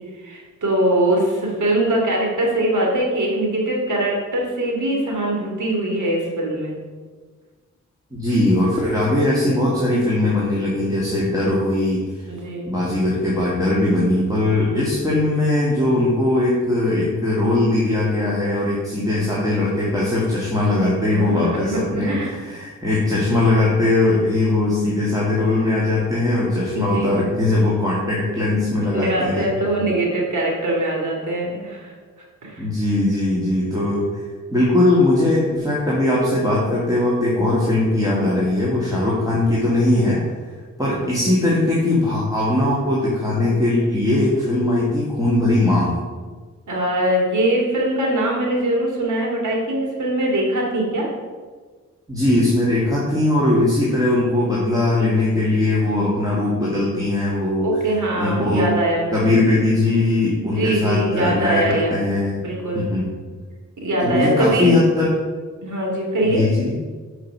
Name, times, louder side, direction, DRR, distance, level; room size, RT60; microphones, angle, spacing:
voice 1, 0.2-6.8 12.3-12.7 21.1-22.4 26.7-27.2 28.9-31.9 32.4-32.7 41.1-41.2 46.7-51.1 57.6-59.3 60.5-61.9 62.4-62.9 63.8-64.8 65.6-66.4, right 1 dB, 70° right, -1 dB, 2.3 m, -22 dB
voice 2, 8.1-12.0 12.7-29.5 32.6-34.2 34.5-40.2 40.8-46.0 52.1-57.7 58.2-58.7 59.1-61.7 61.9-62.4 62.7-63.1 64.0-65.1 66.2-66.7, left 2 dB, 10° right, -7 dB, 2.0 m, -20 dB
6.4 x 4.9 x 6.0 m, 1.4 s
cardioid pair, 65°, 31 cm